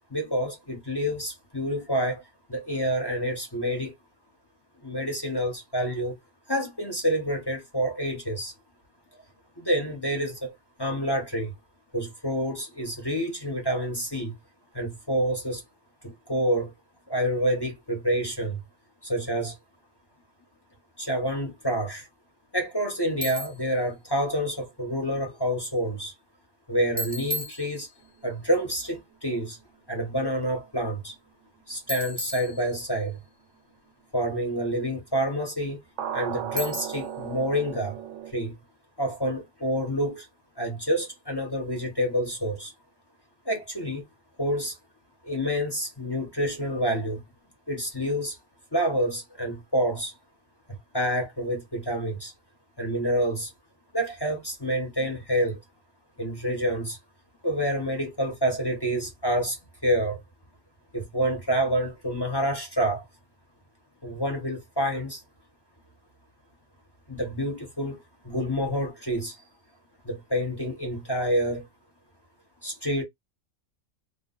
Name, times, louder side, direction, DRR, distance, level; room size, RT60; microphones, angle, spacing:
voice 1, 0.0-2.2 2.5-3.9 4.8-6.2 6.5-8.5 9.6-11.5 11.9-14.3 14.7-15.6 16.0-16.7 17.1-18.6 19.0-19.6 21.0-22.1 22.5-26.1 26.7-27.9 28.2-29.6 29.9-31.1 31.7-33.2 34.1-35.8 36.1-38.0 38.3-38.6 39.0-40.3 40.6-42.7 43.5-44.0 44.4-44.8 45.2-47.2 47.7-48.4 48.7-50.1 50.7-52.3 52.8-53.5 53.9-55.6 56.2-57.0 57.4-60.2 60.9-63.0 64.0-65.2 67.1-69.4 70.0-71.7 72.6-73.0, equal, 20° left, 0.8 m, -28 dB
Bicycle, 23.2-23.7 27.0-28.2 31.9-33.1 36.6-37.2, right 1 dB, 10° right, 0.6 m, -35 dB
sound 1, 36.0-38.3, right 9 dB, 75° right, 0.9 m, -35 dB
2.6 x 2.3 x 3.8 m
omnidirectional pair, 1.4 m